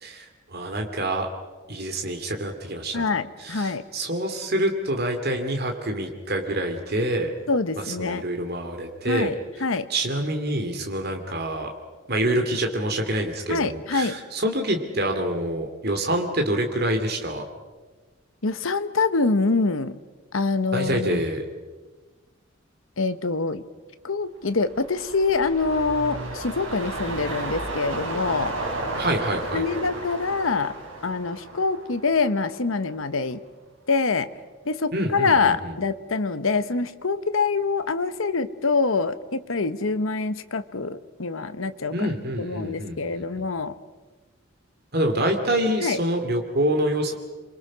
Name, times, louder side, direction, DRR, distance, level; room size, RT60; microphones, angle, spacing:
voice 1, 0.0-1.3 1.7-3.1 3.4-7.3 7.8-9.3 9.9-11.7 12.1-17.4 20.7-21.4 29.0-29.6 34.9-35.7 41.9-43.5 44.9-47.1, right 1 dB, 50° right, 3 dB, 2.6 m, -26 dB
voice 2, 2.9-3.8 7.5-8.2 9.1-9.9 13.5-14.2 18.4-20.0 20.3-21.2 23.0-23.6 24.0-28.5 29.5-30.8 31.0-33.4 33.9-34.3 34.6-43.8 45.8-46.0, left 4 dB, 75° left, 12 dB, 1.1 m, -25 dB
sound 1, 24.5-32.9 33.3-33.4, right 2 dB, 70° right, 4.6 m, -33 dB
27.5 x 23.5 x 6.2 m, 1.3 s
head